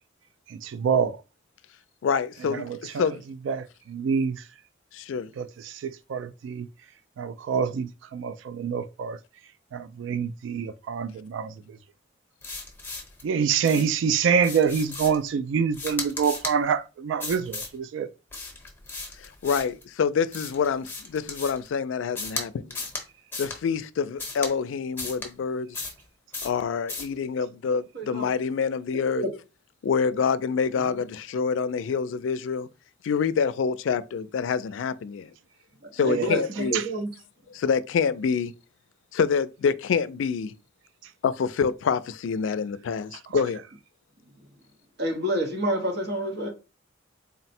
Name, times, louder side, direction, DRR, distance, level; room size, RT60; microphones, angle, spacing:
voice 1, 0.6-1.2 2.7-3.0 3.5-4.4 5.4-6.7 7.2-9.2 9.7-11.5 13.2-18.1 36.1-36.3 36.7-36.8, right 6 dB, 75° right, 0.3 m, -26 dB
voice 2, 2.0-3.2 4.9-5.3 19.2-22.8 23.4-25.8 26.4-29.3 29.8-32.7 33.0-35.3 35.9-36.8 37.5-38.5 39.1-40.5 41.2-43.6, left 6 dB, 80° left, 0.3 m, -26 dB
sound 1, 12.4-13.2 13.6-14.0 14.4-15.3 15.7-16.6 17.2-17.8 18.3-19.8 20.3-21.7 22.2-22.4 22.7-23.0 23.3-23.6 24.2-24.5 25.0-25.3 25.7-26.0 26.3-26.6 26.9-27.1, left 3 dB, 10° left, 0.9 m, -35 dB
voice 3, 27.9-28.3 29.2-29.3 36.0-37.1 45.0-46.5, right 1 dB, 60° right, 0.9 m, -28 dB
4.0 x 2.0 x 4.2 m
head